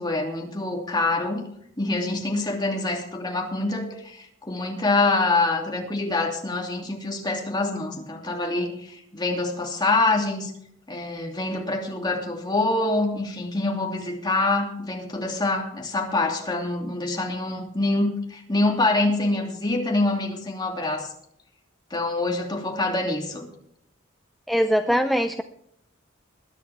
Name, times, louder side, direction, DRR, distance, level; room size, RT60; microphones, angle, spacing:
voice 1, 0.0-1.5 1.8-10.5 10.9-21.1 21.9-23.5, left 2 dB, 20° left, 1 dB, 2.7 m, -25 dB
voice 2, 24.5-25.4, equal, ahead, 7 dB, 0.5 m, -22 dB
21.0 x 10.5 x 3.5 m, 0.71 s
head